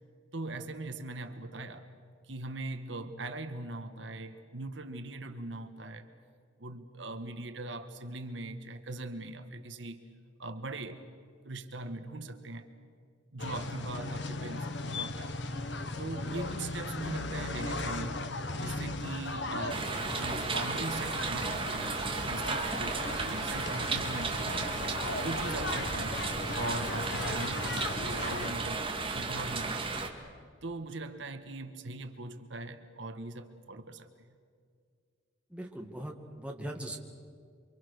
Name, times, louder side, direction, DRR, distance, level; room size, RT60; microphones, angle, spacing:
voice 1, 0.3-1.9 2.2-6.1 6.6-10.0 10.4-11.0 11.4-12.7 13.3-15.3 16.0-18.3 18.6-24.8 25.2-26.2 26.5-29.9 30.6-34.1, right 2 dB, 70° right, 8 dB, 1.5 m, -40 dB
sound 1, 13.4-28.5, left 2 dB, 60° left, 1.4 m, -37 dB
sound 2, 19.7-30.1, right 4 dB, 25° right, 2.2 m, -34 dB
voice 2, 35.5-37.0, right 1 dB, 5° right, 1 dB, 2.2 m, -40 dB
28.5 x 25.0 x 6.6 m, 2.2 s
head